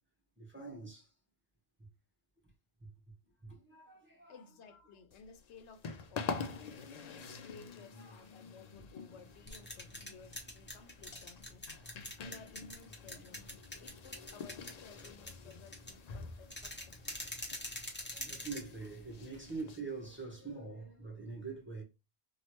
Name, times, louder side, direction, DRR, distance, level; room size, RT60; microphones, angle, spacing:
voice 1, 0.4-1.1 3.4-4.4 4.7-4.8 8.0-8.3 12.2-12.4 13.1-13.2 14.1-14.2 18.2-21.8, right 4 dB, 10° right, 1.0 m, -45 dB
voice 2, 4.3-6.6 7.0-11.8 12.2-13.4 13.8-17.2 18.1-18.3, left 5 dB, 90° left, 0.9 m, -57 dB
sound 1, 5.1-20.2, left 5 dB, 50° left, 0.5 m, -47 dB
sound 2, 9.2-19.6, left 1 dB, 10° left, 0.8 m, -46 dB
3.1 x 2.5 x 2.9 m
omnidirectional pair, 1.1 m